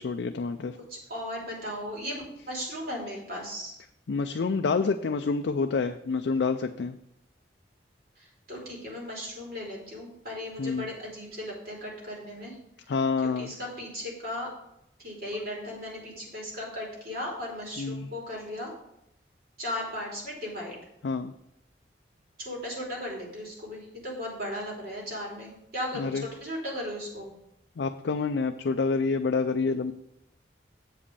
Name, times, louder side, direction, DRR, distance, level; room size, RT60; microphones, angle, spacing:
voice 1, 0.0-0.8 4.1-7.0 10.6-10.9 12.9-13.5 17.8-18.1 21.0-21.3 25.9-26.2 27.8-29.9, left 4 dB, 75° left, 6 dB, 0.4 m, -28 dB
voice 2, 0.9-3.7 8.2-12.6 13.2-14.5 15.0-18.7 19.6-20.7 22.4-27.3, left 1 dB, 55° right, -3 dB, 3.3 m, -36 dB
7.7 x 5.1 x 6.9 m, 0.80 s
head